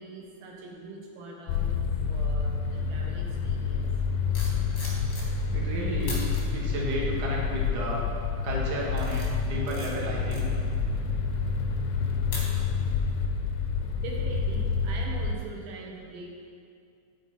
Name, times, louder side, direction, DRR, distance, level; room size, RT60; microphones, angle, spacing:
voice 1, 0.0-1.7 2.1-3.9 13.9-16.5, right 2 dB, 90° right, -1 dB, 2.6 m, -42 dB
sound 1, 1.5-15.3, left 5 dB, 80° left, 1.8 m, -28 dB
sound 2, 4.3-5.6 6.0-6.4 7.1-7.4 7.9-8.3 8.7-13.0 13.3-13.5, left 2 dB, 55° left, 0.9 m, -42 dB
voice 2, 5.5-8.1 8.4-10.5, right 1 dB, 70° right, -4 dB, 2.7 m, -33 dB
10.5 x 4.6 x 4.2 m, 2.3 s
omnidirectional pair, 3.6 m